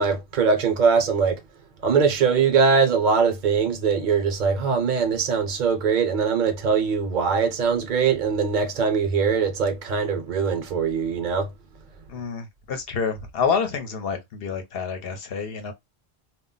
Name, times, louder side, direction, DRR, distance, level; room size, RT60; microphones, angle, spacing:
voice 1, 0.0-1.4 1.8-11.5, right 5 dB, 50° right, 0.8 m, -22 dB
voice 2, 12.1-15.7, left 6 dB, 65° left, 0.8 m, -28 dB
2.3 x 2.0 x 3.7 m
omnidirectional pair, 1.1 m